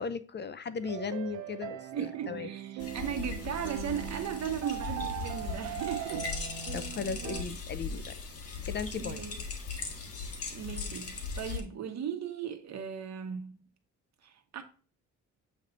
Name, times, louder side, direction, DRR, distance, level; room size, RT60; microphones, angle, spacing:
voice 1, 0.0-2.5 6.7-8.2 8.6-9.2, left 5 dB, 35° left, 0.5 m, -37 dB
sound 1, 0.8-7.4, right 11 dB, 90° right, 0.6 m, -40 dB
voice 2, 1.9-6.3 9.0-9.4 10.5-13.7 14.2-14.6, right 8 dB, 60° right, 1.2 m, -37 dB
sound 2, 2.8-11.6, left 4 dB, 55° left, 1.5 m, -39 dB
7.9 x 3.3 x 3.9 m
cardioid pair, 90°, 30 cm